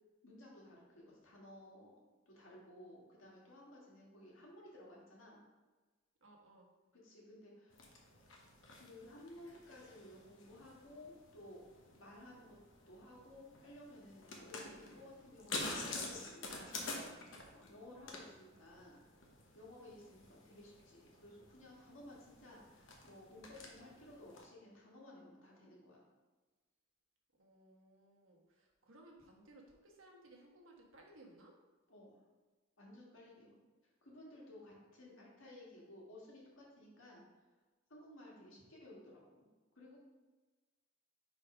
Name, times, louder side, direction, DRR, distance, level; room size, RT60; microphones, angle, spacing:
voice 1, 0.2-1.9 2.3-5.4 6.9-7.9 8.7-12.6 12.9-16.7 17.5-19.0 19.5-26.0 31.9-32.2 32.8-33.6 34.0-37.2 37.9-39.5 39.8-40.0, left 1 dB, 90° left, -4 dB, 1.9 m, -56 dB
voice 2, 6.2-6.7 27.4-31.5, right 1 dB, 85° right, 0 dB, 1.2 m, -61 dB
sound 1, 7.7-24.4, left 2 dB, 70° left, 1.0 m, -49 dB
5.0 x 4.2 x 5.0 m, 1.3 s
head